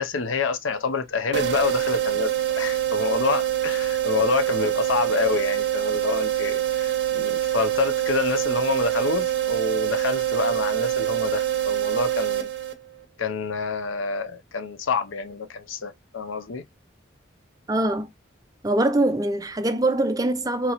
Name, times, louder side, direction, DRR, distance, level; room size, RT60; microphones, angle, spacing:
voice 1, 0.0-12.5 13.2-16.6, left 5 dB, 85° left, 0.6 m, -27 dB
sound 1, 1.3-13.0, right 12 dB, 60° right, 0.6 m, -25 dB
voice 2, 17.7-18.1 18.6-20.7, right 1 dB, 20° right, 0.4 m, -23 dB
3.9 x 2.9 x 2.9 m
head